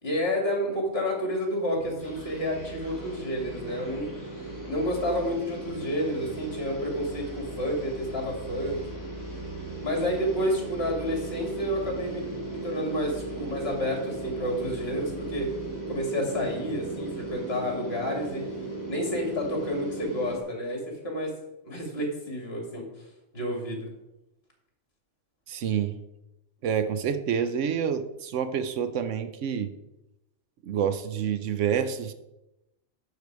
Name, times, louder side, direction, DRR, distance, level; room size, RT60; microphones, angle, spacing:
voice 1, 0.0-4.1 4.7-8.8 9.8-12.2 12.5-15.5 15.9-18.5 18.9-21.3 21.6-22.9 23.3-23.9, equal, 55° left, 0 dB, 2.7 m, -30 dB
sound 1, 1.7-17.3, right 2 dB, 45° right, 3.8 m, -43 dB
sound 2, 2.0-20.4, right 2 dB, 15° left, 2.2 m, -38 dB
voice 2, 25.5-26.0 26.6-29.7 30.6-32.1, right 8 dB, 75° right, 10 dB, 1.0 m, -28 dB
9.2 x 7.0 x 4.7 m, 0.94 s
omnidirectional pair, 1.3 m